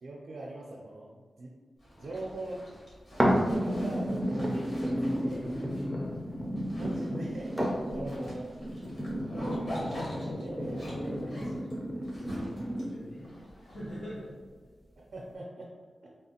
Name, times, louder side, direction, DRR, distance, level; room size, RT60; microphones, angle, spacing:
voice 1, 0.0-1.5 2.0-2.7 3.3-5.6 6.8-7.6 7.9-8.5 10.1-11.7 15.0-15.7 16.0-16.1, right 2 dB, 70° right, -3 dB, 0.5 m, -42 dB
Zipper (clothing), 1.8-14.3, equal, 55° left, 1.1 m, -45 dB
sound 1, 3.2-13.2 13.8-13.9, equal, ahead, 0.4 m, -32 dB
voice 2, 5.7-6.2 8.0-8.2 12.3-14.3, equal, 85° left, -12 dB, 1.1 m, -43 dB
3.4 x 2.4 x 2.8 m, 1.4 s
wide cardioid pair, 180°, 0 cm